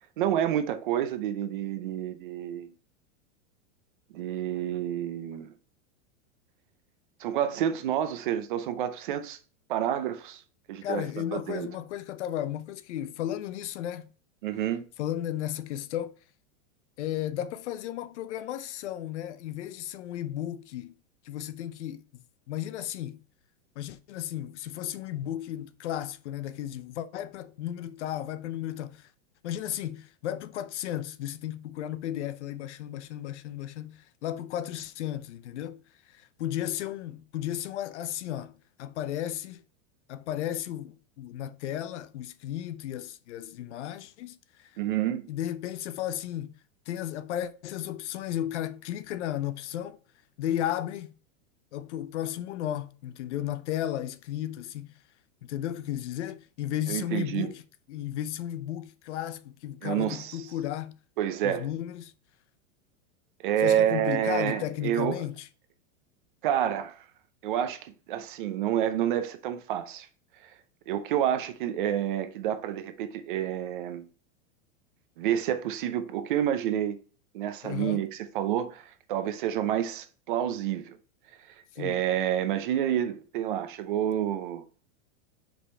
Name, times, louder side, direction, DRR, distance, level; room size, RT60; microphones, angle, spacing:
voice 1, 0.2-2.7 4.1-5.5 7.2-9.4 9.7-10.4 10.7-11.0 11.3-11.7 14.4-14.8 44.8-45.3 56.9-57.5 59.8-60.4 61.2-61.7 63.4-65.2 66.4-67.0 67.4-70.1 70.9-74.1 75.2-77.0 77.3-81.0 81.8-84.6, right 10 dB, 40° right, 0.6 m, -29 dB
voice 2, 10.8-14.1 15.0-16.1 17.0-20.9 21.2-23.2 23.8-29.1 29.4-35.8 36.1-38.5 38.8-39.6 40.1-44.7 45.3-46.5 46.9-50.0 50.4-51.1 51.7-55.0 55.4-57.6 57.9-61.0 61.4-62.1 63.6-65.5 77.6-78.0 81.7-82.0, left 12 dB, 60° left, 0.7 m, -34 dB
5.3 x 5.0 x 4.3 m
supercardioid pair, 180°, 38 cm